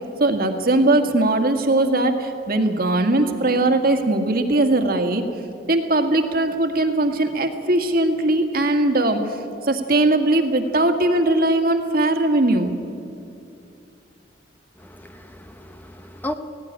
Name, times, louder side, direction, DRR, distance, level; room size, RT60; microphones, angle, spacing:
voice 1, 0.2-5.2 5.7-9.4 9.6-12.7, right 2 dB, 55° right, 5 dB, 1.8 m, -20 dB
voice 2, 14.8-16.3, left 1 dB, 10° left, 7 dB, 0.8 m, -34 dB
17.5 x 17.0 x 10.0 m, 2.6 s
head